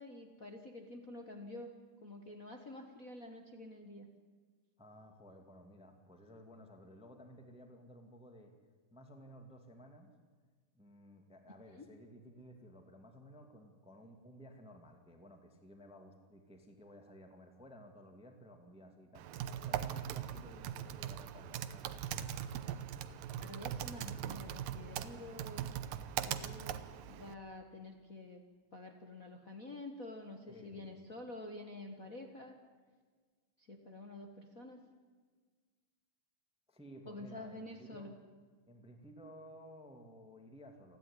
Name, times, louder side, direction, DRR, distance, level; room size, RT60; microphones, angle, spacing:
voice 1, 0.0-1.7 2.0-4.1 11.7-11.9 23.4-25.7 26.2-28.4 28.7-32.6 33.6-34.9 37.1-38.1, left 2 dB, 55° left, 3 dB, 0.9 m, -48 dB
voice 2, 4.8-8.5 8.9-10.1 10.7-19.3 19.6-22.1 30.5-30.9 36.7-38.1 38.7-41.0, equal, 5° right, 5 dB, 1.4 m, -55 dB
Typing, 19.1-27.3, right 10 dB, 80° right, 2.5 m, -41 dB
29.0 x 11.0 x 9.9 m, 1.5 s
omnidirectional pair, 3.9 m